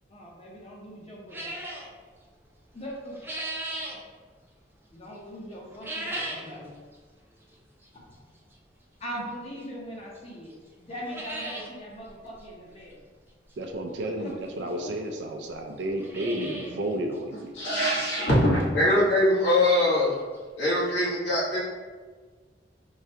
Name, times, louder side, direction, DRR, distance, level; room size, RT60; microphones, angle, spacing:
voice 1, 0.1-1.5 2.7-3.1 4.9-6.7 9.0-10.5 10.8-13.0 14.0-14.1 14.6-14.9, equal, 35° left, -3 dB, 0.7 m, -40 dB
sound 1, 1.3-1.9 2.8-4.0 5.7-6.5 6.9-7.0 7.8-7.9 9.6-9.7 10.2-10.3 10.5-10.6 10.9-11.7 12.1-12.2 12.4-12.5 14.0-14.1 14.9-15.0 15.2-15.3 15.8-16.8 17.1-17.2 17.7-17.8 18.2-18.3 20.1-20.2 20.3-20.4 20.9-21.0, right 1 dB, 10° right, 0.4 m, -36 dB
voice 2, 13.6-17.6, right 1 dB, 80° right, 3 dB, 0.4 m, -32 dB
voice 3, 17.5-20.2 20.6-21.6, left 1 dB, 75° left, -7 dB, 1.2 m, -22 dB
4.6 x 2.1 x 2.7 m, 1.4 s
head